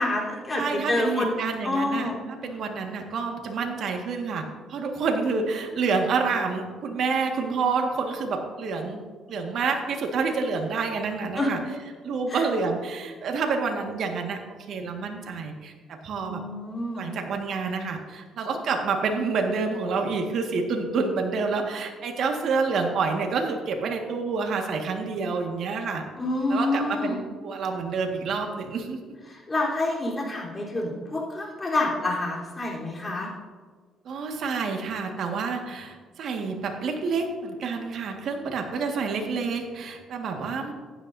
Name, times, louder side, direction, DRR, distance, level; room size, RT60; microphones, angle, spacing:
voice 1, 0.0-1.4 1.6-2.1 11.4-11.5 12.3-12.4 16.3-17.1 26.2-27.2 29.3-33.3, left 2 dB, 25° left, -3 dB, 3.7 m, -27 dB
voice 2, 0.5-11.6 12.0-14.4 14.7-16.4 16.9-26.0 26.5-29.0 34.0-40.7, right 4 dB, 65° right, 3 dB, 1.7 m, -28 dB
15.0 x 10.5 x 2.7 m, 1.5 s
cardioid pair, 95°, 0 cm